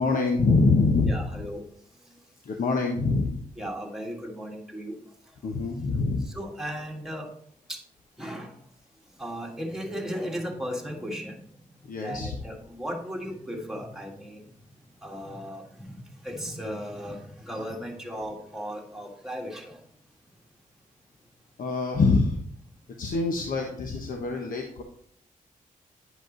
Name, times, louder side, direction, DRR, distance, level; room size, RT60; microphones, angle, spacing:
voice 1, 0.0-1.5 2.4-3.4 5.4-6.3 11.8-12.4 21.6-22.4 23.0-24.8, left 3 dB, 75° left, 2 dB, 1.0 m, -25 dB
voice 2, 1.0-1.7 2.0-2.1 3.6-5.0 6.3-7.3 7.7-7.8 8.2-8.5 9.2-11.5 12.0-14.5 15.0-19.8, equal, 5° right, 0 dB, 1.8 m, -36 dB
9.8 x 5.2 x 3.9 m, 0.63 s
cardioid pair, 90°, 14 cm